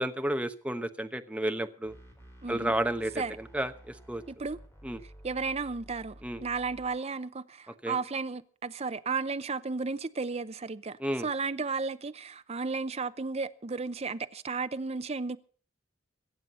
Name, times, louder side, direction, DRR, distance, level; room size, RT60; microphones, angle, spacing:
voice 1, 0.0-1.9 2.5-4.2 4.8-5.0 6.2-6.4 7.8-8.0 11.0-11.3, right 1 dB, 5° right, 0.9 m, -32 dB
sound 1, 1.8-6.9, right 1 dB, 15° left, 4.6 m, -52 dB
voice 2, 2.4-2.7 3.2-3.4 4.3-4.6 5.2-15.4, right 4 dB, 30° right, 0.6 m, -34 dB
23.0 x 7.8 x 5.5 m
head